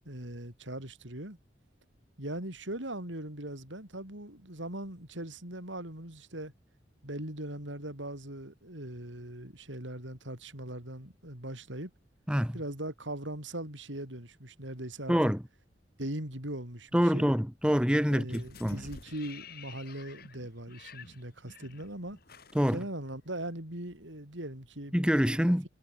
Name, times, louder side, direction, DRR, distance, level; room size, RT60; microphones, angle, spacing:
voice 1, 0.1-1.4 2.2-6.5 7.0-11.9 12.5-15.3 16.0-17.3 18.1-22.2 22.7-25.0, right 1 dB, 90° right, 7.3 m, -40 dB
voice 2, 15.1-15.4 16.9-18.8 22.5-22.8 24.9-25.6, equal, 5° right, 2.3 m, -26 dB
sound 1, 18.3-23.5 23.9-24.0, left 5 dB, 55° left, 5.3 m, -51 dB
head